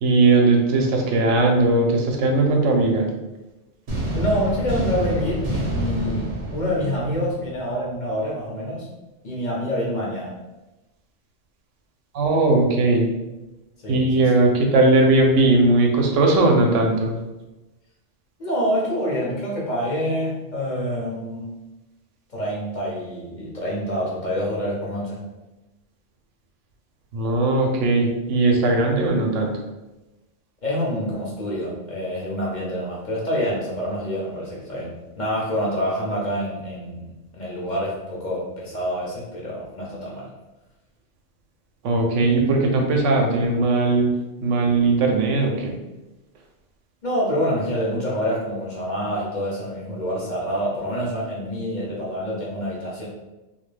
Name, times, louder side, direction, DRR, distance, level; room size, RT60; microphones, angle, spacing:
voice 1, 0.0-3.1 12.1-13.1 13.9-17.2 27.1-29.5 41.8-44.1 44.4-45.7, right 2 dB, 90° right, 1 dB, 0.9 m, -18 dB
sound 1, 3.9-7.8, right 1 dB, 50° right, 0.6 m, -28 dB
voice 2, 4.1-8.9 9.2-10.3 13.8-14.3 18.4-21.5 22.3-25.2 30.6-34.9 35.2-40.2 47.0-53.1, equal, 50° left, -5 dB, 0.6 m, -26 dB
2.3 x 2.1 x 3.1 m, 1.0 s
omnidirectional pair, 1.2 m